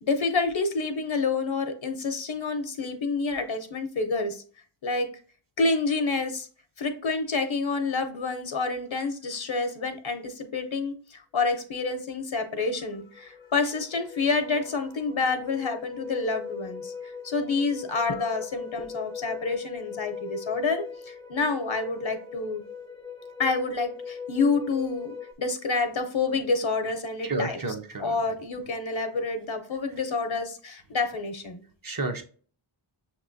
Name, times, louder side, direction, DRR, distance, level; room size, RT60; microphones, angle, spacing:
voice 1, 0.0-4.4 4.8-5.1 5.6-6.5 6.8-22.6 23.4-27.6 28.0-31.6, left 3 dB, 75° left, 7 dB, 0.7 m, -28 dB
sound 1, 12.8-25.3, left 6 dB, 10° left, 0.5 m, -40 dB
voice 2, 27.2-28.4 31.8-32.2, right 2 dB, 45° right, 6 dB, 0.7 m, -31 dB
6.1 x 3.0 x 2.5 m, 0.41 s
wide cardioid pair, 45°, 47 cm